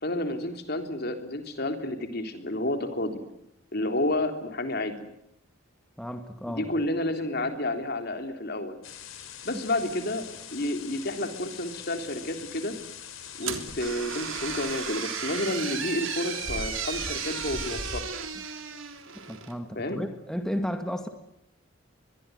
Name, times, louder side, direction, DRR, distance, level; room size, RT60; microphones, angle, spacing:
voice 1, 0.0-3.2 3.7-5.0 6.5-8.8 9.4-10.3 10.5-12.7 13.4-18.0 19.8-20.0, left 1 dB, 50° left, 6 dB, 3.7 m, -30 dB
voice 2, 6.0-6.7 9.5-9.6 19.3-21.1, equal, 5° left, 6 dB, 1.9 m, -33 dB
sound 1, 8.8-18.0, left 5 dB, 85° left, 3.8 m, -41 dB
sound 2, 13.4-19.6, right 7 dB, 75° right, 3.5 m, -35 dB
24.0 x 22.0 x 9.4 m, 0.80 s
head